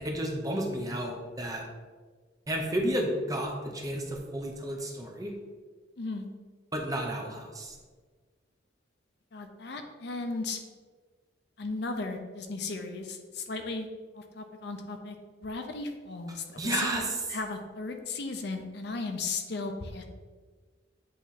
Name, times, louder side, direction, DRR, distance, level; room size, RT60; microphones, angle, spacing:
voice 1, 0.0-1.6 2.5-5.3 6.7-7.8 16.6-17.1, right 1 dB, 20° right, 1 dB, 0.7 m, -32 dB
voice 2, 6.0-6.3 9.3-10.6 11.6-13.9 14.1-15.2 15.4-16.9 17.3-20.0, left 3 dB, 60° left, 5 dB, 0.6 m, -36 dB
8.3 x 3.0 x 4.2 m, 1.4 s
head